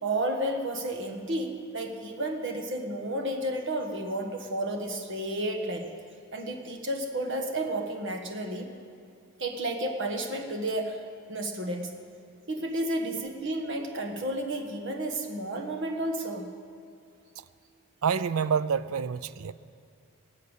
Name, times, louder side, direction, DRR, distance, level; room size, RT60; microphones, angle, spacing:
voice 1, 0.0-5.9 6.3-8.7 9.4-12.0 12.5-16.5, right 1 dB, 55° right, 4 dB, 1.5 m, -32 dB
voice 2, 18.0-19.5, right 6 dB, 70° right, 16 dB, 0.4 m, -27 dB
19.0 x 8.2 x 8.2 m, 2.5 s
head